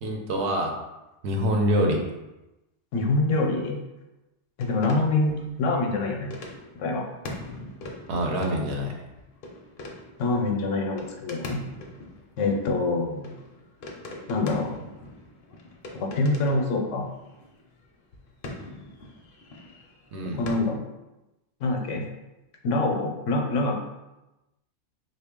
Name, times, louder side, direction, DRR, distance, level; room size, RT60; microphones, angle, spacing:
voice 1, 0.0-0.7 1.2-2.0 8.1-8.9 20.1-20.4, equal, 70° right, 1 dB, 0.9 m, -25 dB
voice 2, 2.9-3.8 4.6-6.3 6.8-7.0 10.2-11.6 12.4-13.4 14.3-14.7 15.9-17.1 20.4-20.8 21.6-22.0 22.6-23.7, left 2 dB, 80° left, 2 dB, 1.0 m, -25 dB
sound 1, 4.6-20.5, left 2 dB, 55° left, 0.7 m, -42 dB
3.3 x 2.4 x 3.6 m, 0.99 s
omnidirectional pair, 1.2 m